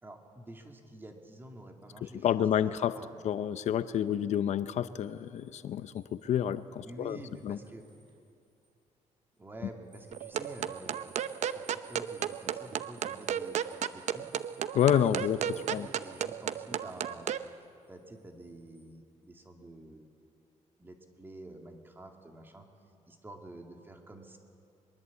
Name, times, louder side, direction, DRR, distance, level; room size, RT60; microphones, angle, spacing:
voice 1, 0.0-2.4 3.0-3.2 6.7-7.9 9.4-13.6 13.9-14.3 14.9-17.3 17.9-20.1 20.8-22.7 23.1-24.4, right 1 dB, 15° right, 3 dB, 2.2 m, -49 dB
voice 2, 2.0-3.0 3.2-7.2 7.4-7.6 14.7-15.9, left 9 dB, 65° left, 13 dB, 0.7 m, -29 dB
sound 1, 5.0-8.2 8.6-8.7 9.9-18.9, right 3 dB, 35° right, 5.5 m, -61 dB
sound 2, 10.1-17.4, right 9 dB, 65° right, 0.7 m, -34 dB
22.5 x 22.0 x 8.3 m, 2.6 s
cardioid pair, 145°, 13 cm